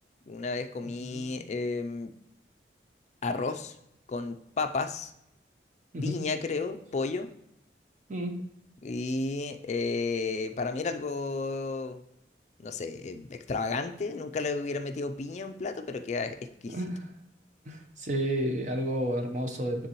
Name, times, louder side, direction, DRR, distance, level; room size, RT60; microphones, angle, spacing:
voice 1, 0.3-2.1 3.2-3.7 4.1-5.1 6.0-7.3 8.8-12.0 12.6-16.4 16.6-16.8, left 3 dB, 40° left, 7 dB, 0.4 m, -32 dB
voice 2, 0.8-1.4 5.9-6.2 8.1-8.4 16.7-17.1 17.7-19.9, equal, 45° right, 4 dB, 0.8 m, -31 dB
9.5 x 3.7 x 3.0 m, 0.79 s
head